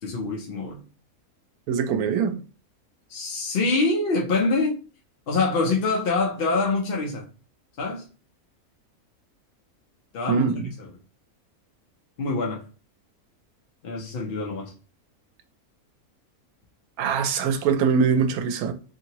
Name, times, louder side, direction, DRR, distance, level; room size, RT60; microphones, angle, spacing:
voice 1, 0.0-0.8 3.1-4.8 5.3-7.3 7.8-8.1 10.1-10.9 12.2-12.6 13.8-14.7, left 3 dB, 55° left, 0.7 m, -25 dB
voice 2, 1.7-2.4 10.3-10.7 17.0-18.7, right 6 dB, 90° right, 1.1 m, -23 dB
2.9 x 2.7 x 2.8 m
omnidirectional pair, 1.5 m